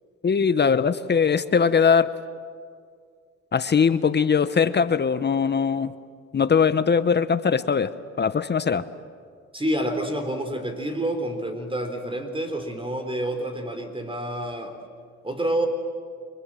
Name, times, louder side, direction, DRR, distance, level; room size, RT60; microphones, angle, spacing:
voice 1, 0.2-2.1 3.5-5.9 6.3-7.9 8.2-8.8, left 6 dB, 35° left, 13 dB, 0.9 m, -21 dB
voice 2, 9.5-14.7 15.2-15.7, right 1 dB, 15° right, 6 dB, 3.8 m, -28 dB
29.5 x 25.0 x 7.6 m, 2.1 s
cardioid pair, 90°, 30 cm